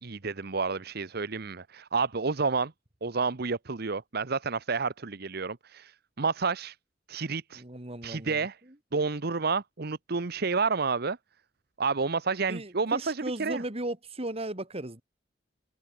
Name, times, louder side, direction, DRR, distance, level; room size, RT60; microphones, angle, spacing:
voice 1, 0.0-2.7 3.0-6.8 7.1-7.6 8.0-8.6 8.9-11.2 11.8-13.6, right 4 dB, 60° right, 1.0 m, -30 dB
voice 2, 7.6-8.5 12.5-15.0, right 1 dB, 35° right, 2.8 m, -36 dB
head